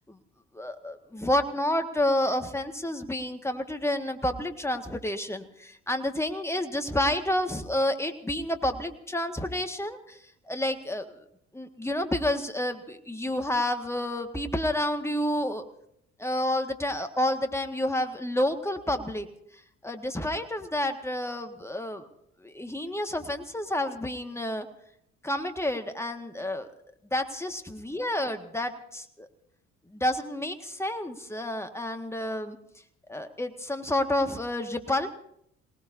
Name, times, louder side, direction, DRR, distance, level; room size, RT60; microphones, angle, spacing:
voice 1, 0.5-10.2 10.5-11.1 11.5-15.6 16.2-19.3 19.8-22.0 22.4-24.7 25.2-26.7 27.1-29.3 29.9-32.6 33.1-35.1, left 1 dB, 10° left, 7 dB, 1.8 m, -29 dB
27.5 x 18.5 x 2.7 m, 0.70 s
hypercardioid pair, 50°, 34 cm